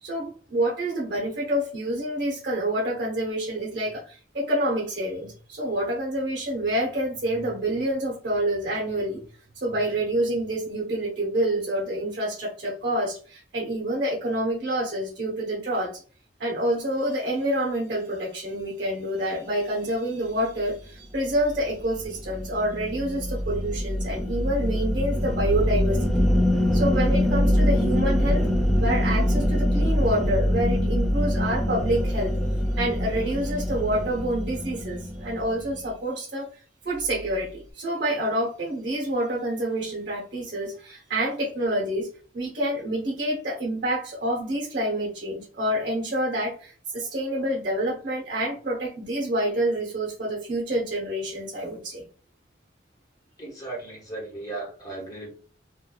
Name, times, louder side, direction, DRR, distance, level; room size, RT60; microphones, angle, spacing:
voice 1, 0.0-9.3 9.6-16.0 16.4-26.3 26.7-28.5 28.8-32.3 32.8-36.5 36.8-42.1 42.3-52.0, right 1 dB, 60° right, -3 dB, 0.8 m, -27 dB
sound 1, 21.3-35.8, equal, ahead, 0.4 m, -24 dB
voice 2, 53.4-55.3, right 2 dB, 20° left, -4 dB, 1.1 m, -36 dB
3.3 x 2.2 x 2.2 m, 0.39 s
head